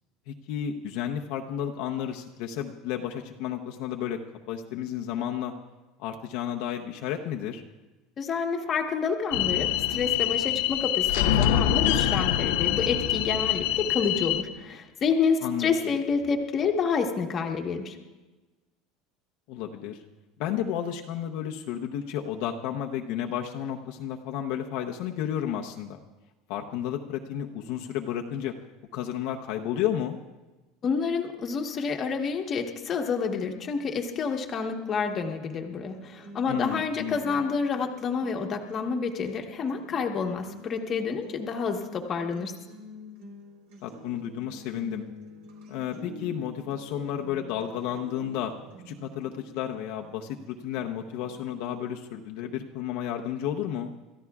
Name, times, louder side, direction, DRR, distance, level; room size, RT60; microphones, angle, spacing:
voice 1, 0.3-4.2 4.5-5.5 6.0-7.6 15.4-15.7 19.5-20.0 20.4-26.0 26.5-28.5 28.9-30.2 36.5-37.2 43.8-45.0 45.7-48.5 48.8-53.9, left 10 dB, 60° left, 2 dB, 0.8 m, -32 dB
voice 2, 8.2-18.0 30.8-42.5, left 5 dB, 25° left, 2 dB, 1.2 m, -28 dB
sound 1, 9.3-14.4, left 11 dB, 85° left, 0.7 m, -25 dB
sound 2, 35.9-51.9, equal, 75° right, 3.7 m, -48 dB
27.5 x 14.0 x 2.4 m, 1.2 s
cardioid pair, 165°, 0 cm